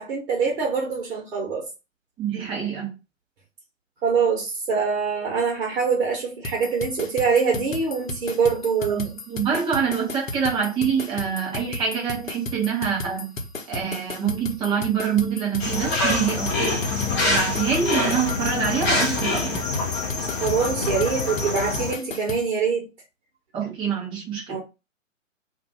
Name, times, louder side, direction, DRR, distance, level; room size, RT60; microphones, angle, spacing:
voice 1, 0.0-1.6 4.0-9.0 20.4-22.9 24.5-24.6, right 5 dB, 50° right, 1.2 m, -24 dB
voice 2, 2.2-3.0 8.8-13.3 13.7-19.6 23.5-24.6, right 7 dB, 15° right, 0.8 m, -26 dB
sound 1, 6.4-22.4, left 2 dB, 80° left, 0.9 m, -34 dB
sound 2, 15.6-21.9, left 3 dB, 20° left, 0.7 m, -25 dB
2.5 x 2.5 x 3.4 m
figure-of-eight pair, 125°, 39 cm